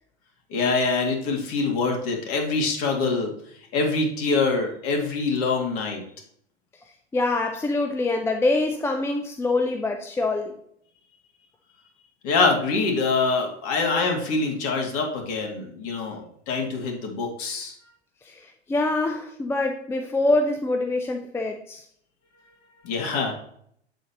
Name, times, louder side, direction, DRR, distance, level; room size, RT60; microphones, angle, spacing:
voice 1, 0.5-3.3 3.7-6.0 12.2-16.2 16.5-17.7 22.8-23.3, left 4 dB, 40° left, 2 dB, 2.5 m, -24 dB
voice 2, 7.1-10.5 18.2-21.8, left 2 dB, 5° left, 4 dB, 0.5 m, -25 dB
8.3 x 7.3 x 3.0 m, 0.66 s
figure-of-eight pair, 90°, 34 cm